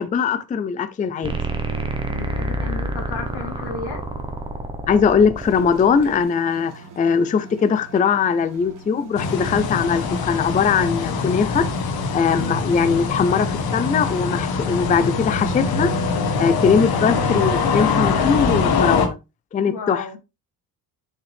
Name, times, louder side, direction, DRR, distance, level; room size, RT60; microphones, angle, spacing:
voice 1, 0.0-1.4 4.9-11.7 12.1-15.9 16.4-19.2 19.5-20.1, left 6 dB, 20° left, 0.4 m, -20 dB
sound 1, 1.2-6.2, right 2 dB, 15° right, 1.1 m, -28 dB
voice 2, 2.1-4.0 12.4-12.5 19.7-20.2, left 4 dB, 85° left, 3.5 m, -33 dB
sound 2, 5.3-13.8, right 4 dB, 50° right, 1.9 m, -44 dB
sound 3, 9.2-19.1, left 4 dB, 65° left, 1.4 m, -23 dB
6.6 x 5.4 x 3.4 m
cardioid pair, 155°, 39 cm